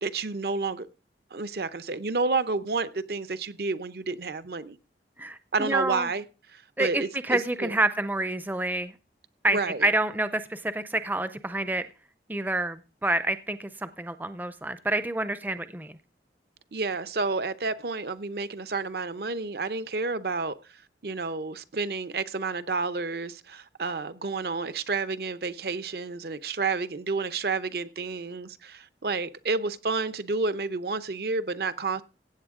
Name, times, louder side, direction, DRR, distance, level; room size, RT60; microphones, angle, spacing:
voice 1, 0.0-0.9 1.3-4.8 5.5-6.2 6.5-7.8 9.5-9.9 16.7-20.5 21.0-32.0, right 3 dB, 60° right, 0.7 m, -30 dB
voice 2, 5.2-6.1 6.8-8.9 9.4-11.9 12.3-16.0, right 2 dB, 10° right, 0.4 m, -28 dB
16.0 x 8.4 x 3.7 m
head